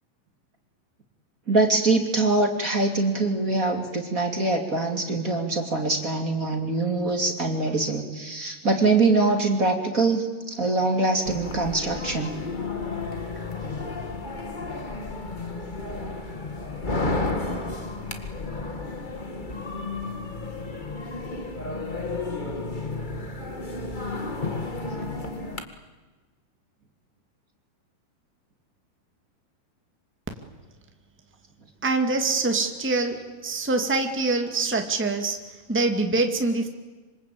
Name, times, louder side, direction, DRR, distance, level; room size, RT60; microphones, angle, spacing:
voice 1, 1.5-12.3, right 3 dB, 25° right, 3 dB, 2.6 m, -23 dB
sound 1, 11.3-25.6, left 3 dB, 60° left, 0.5 m, -32 dB
voice 2, 31.8-35.4 35.7-36.7, right 3 dB, 5° right, 4 dB, 1.3 m, -24 dB
26.0 x 26.0 x 8.6 m, 1.3 s
omnidirectional pair, 4.4 m